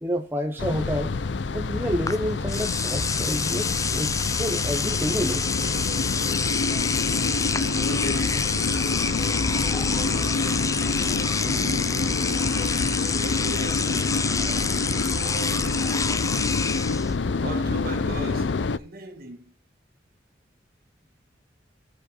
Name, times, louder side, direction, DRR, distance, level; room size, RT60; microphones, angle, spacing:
voice 1, 0.0-1.2 1.5-5.5, equal, 10° right, 0.9 m, -29 dB
sound 1, 0.6-18.8, left 3 dB, 70° left, 0.5 m, -27 dB
Engine / Domestic sounds home sounds, 2.1-2.2 2.5-17.1, left 5 dB, 20° left, 0.5 m, -28 dB
sound 2, 4.8-15.5, left 2 dB, 45° left, 2.3 m, -44 dB
voice 2, 7.5-12.7 13.2-16.7 17.3-19.5, right 1 dB, 55° right, 2.1 m, -39 dB
16.0 x 5.4 x 4.5 m
head